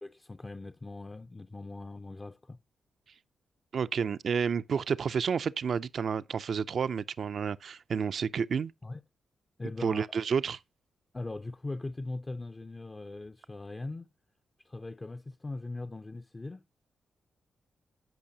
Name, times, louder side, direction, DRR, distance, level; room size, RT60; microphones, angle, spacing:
voice 1, 0.0-2.6 8.8-9.0 9.6-10.2 11.1-14.1 14.6-16.6, left 2 dB, 25° left, 0.5 m, -40 dB
voice 2, 3.7-8.7 9.8-10.6, right 6 dB, 65° right, 0.4 m, -30 dB
15.0 x 5.4 x 2.7 m
cardioid pair, 70°, 0 cm